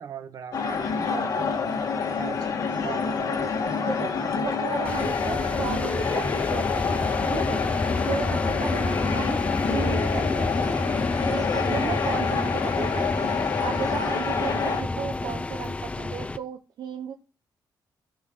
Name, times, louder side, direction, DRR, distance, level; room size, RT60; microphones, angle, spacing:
voice 1, 0.0-1.3 1.6-1.8 2.1-2.6 11.6-11.9, right 7 dB, 55° right, 1.5 m, -40 dB
sound 1, 0.5-14.8, left 5 dB, 55° left, 1.6 m, -27 dB
voice 2, 1.1-1.6 2.8-3.5 3.8-7.0 7.3-9.4 9.7-10.8 11.3-17.1, right 8 dB, 75° right, 1.0 m, -35 dB
sound 2, 4.8-16.4, left 2 dB, 15° left, 0.5 m, -29 dB
16.0 x 6.2 x 3.8 m
cardioid pair, 145°, 7 cm